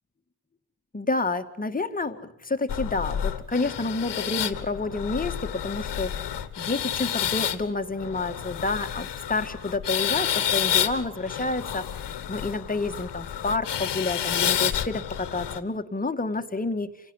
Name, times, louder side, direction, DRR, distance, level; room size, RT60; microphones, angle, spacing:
voice 1, 0.9-6.2 6.6-11.9 12.3-16.9, left 3 dB, 20° left, 7 dB, 1.9 m, -29 dB
sound 1, 2.7-15.6, left 10 dB, 70° left, 1.8 m, -30 dB
27.5 x 17.0 x 9.8 m, 0.77 s
cardioid pair, 100°, 44 cm